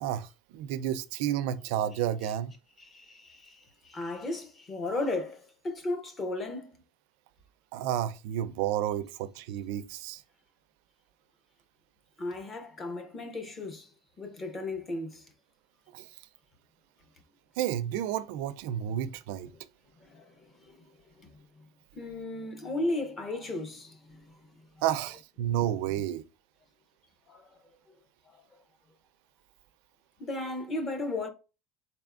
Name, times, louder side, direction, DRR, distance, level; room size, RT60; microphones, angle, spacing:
voice 1, 0.0-2.5 7.7-10.2 15.9-16.1 17.6-19.5 24.8-26.2, right 11 dB, 65° right, 0.4 m, -31 dB
voice 2, 2.8-6.7 12.2-13.9 14.2-15.2 20.1-20.3 20.6-20.7 21.2-21.3 22.0-24.2 27.3-27.4 30.2-31.3, left 2 dB, 20° left, 0.6 m, -35 dB
4.2 x 3.4 x 2.4 m
cardioid pair, 175°, 0 cm